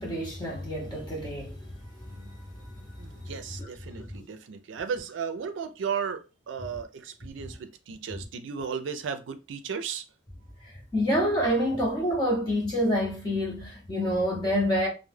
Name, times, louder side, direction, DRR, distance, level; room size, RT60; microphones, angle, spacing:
voice 1, 0.0-1.6 2.1-2.3 2.6-2.7 3.3-3.4 10.9-14.9, equal, 25° left, 0.6 m, -27 dB
voice 2, 3.0-10.0, right 6 dB, 90° right, 0.4 m, -35 dB
2.2 x 2.0 x 3.2 m
head